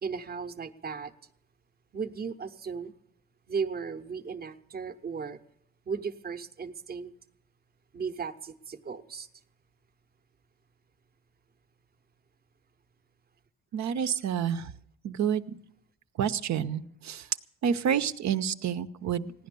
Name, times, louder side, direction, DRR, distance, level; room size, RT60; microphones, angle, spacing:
voice 1, 0.0-1.1 1.9-2.9 3.5-5.4 5.9-7.1 7.9-9.3, right 5 dB, 30° right, 9 dB, 0.9 m, -36 dB
voice 2, 13.7-14.7 15.0-15.4 16.2-17.2 17.6-19.3, right 8 dB, 65° right, 11 dB, 0.8 m, -28 dB
16.0 x 10.5 x 6.9 m, 0.71 s
cardioid pair, 90°, 30 cm